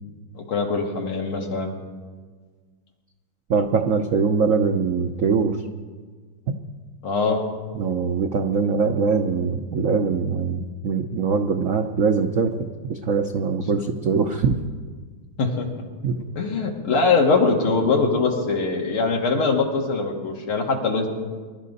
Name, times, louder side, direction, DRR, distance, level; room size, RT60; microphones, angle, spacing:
voice 1, 0.3-1.7 7.0-7.4 15.4-15.7 16.4-21.1, left 4 dB, 75° left, 1 dB, 2.7 m, -22 dB
voice 2, 3.5-5.6 6.5-6.6 7.7-12.5 12.9-14.5 16.0-16.1, right 5 dB, 70° right, 5 dB, 0.7 m, -22 dB
24.0 x 12.0 x 4.1 m, 1.5 s
omnidirectional pair, 2.4 m